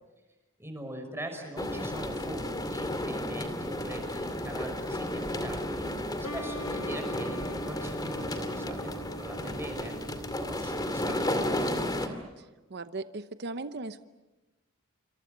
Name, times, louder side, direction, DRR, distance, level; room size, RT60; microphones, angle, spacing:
voice 1, 0.6-10.0 10.3-12.2, right 1 dB, 10° right, 5 dB, 5.6 m, -42 dB
sound 1, 1.6-12.1, left 1 dB, 20° left, 2.4 m, -33 dB
sound 2, 6.2-11.7, equal, 85° left, 1.4 m, -44 dB
voice 2, 12.4-14.0, right 3 dB, 55° right, 11 dB, 0.9 m, -38 dB
28.0 x 26.5 x 6.7 m, 1.1 s
head